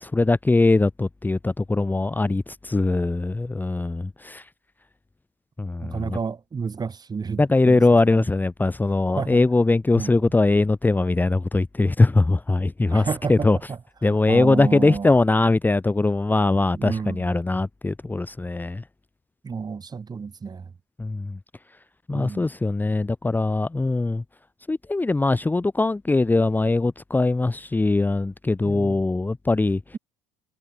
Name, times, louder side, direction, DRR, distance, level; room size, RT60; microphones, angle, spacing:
voice 1, 0.0-4.4 5.6-6.2 7.4-13.6 14.0-18.8 21.0-21.4 22.1-24.2 24.7-29.8, left 2 dB, 15° left, 1.1 m, -21 dB
voice 2, 5.8-7.8 8.1-8.2 9.1-9.4 9.9-10.1 12.9-13.8 14.0-15.1 16.7-17.3 19.4-20.7 22.1-22.5 28.6-29.0, right 5 dB, 30° right, 2.5 m, -30 dB
hypercardioid pair, 75°, 14 cm